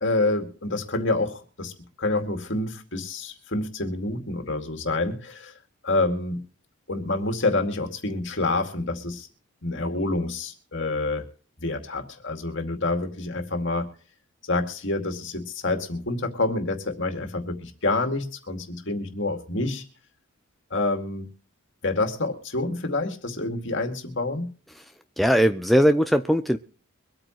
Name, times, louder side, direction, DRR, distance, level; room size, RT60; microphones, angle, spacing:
voice 1, 0.0-1.7 2.0-5.5 5.8-6.4 6.9-9.3 9.6-11.3 11.6-13.9 14.4-19.8 20.7-21.3 21.8-24.5, left 2 dB, 60° left, 5 dB, 2.3 m, -27 dB
voice 2, 25.2-26.6, equal, ahead, 7 dB, 0.5 m, -19 dB
24.0 x 8.9 x 3.1 m, 0.43 s
head